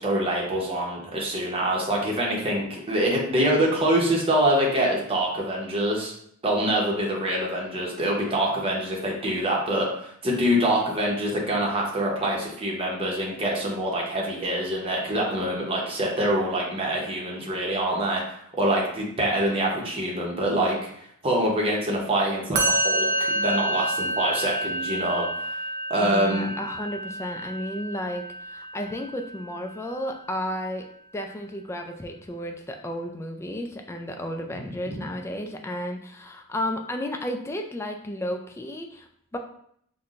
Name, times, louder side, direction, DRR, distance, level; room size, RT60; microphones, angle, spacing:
voice 1, 0.0-6.1 6.4-18.2 18.6-20.8 21.2-25.5 25.9-26.5, right 1 dB, 25° right, -2 dB, 0.8 m, -25 dB
Musical instrument, 22.5-29.8, right 1 dB, 50° right, 0.5 m, -29 dB
voice 2, 26.0-30.9 31.1-39.4, left 1 dB, 15° left, 3 dB, 0.3 m, -33 dB
5.5 x 2.2 x 2.4 m, 0.68 s
head